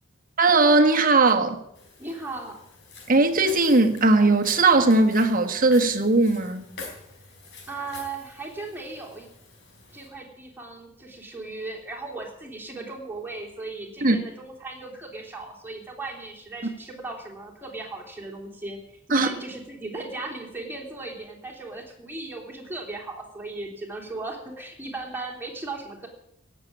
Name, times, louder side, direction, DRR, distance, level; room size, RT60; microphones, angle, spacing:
voice 1, 0.4-1.6 3.1-6.7 14.0-14.2 19.1-19.3, right 3 dB, 45° right, 1.5 m, -19 dB
Walk footsteps, 1.8-10.1, left 3 dB, 60° left, 4.6 m, -46 dB
voice 2, 2.0-2.6 7.7-9.3 9.9-18.8 19.1-26.1, right 3 dB, 10° right, 3.3 m, -37 dB
17.0 x 7.6 x 8.5 m
head